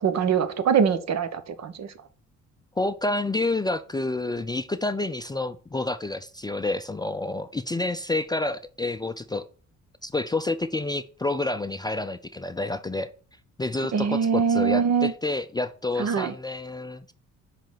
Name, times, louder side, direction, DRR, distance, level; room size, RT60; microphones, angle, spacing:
voice 1, 0.0-1.9 13.9-15.1 16.0-16.3, right 6 dB, 60° right, 1.1 m, -23 dB
voice 2, 2.8-9.4 10.0-13.1 13.6-17.1, left 2 dB, 15° left, 0.4 m, -29 dB
5.2 x 5.1 x 6.1 m
cardioid pair, 90°, 30 cm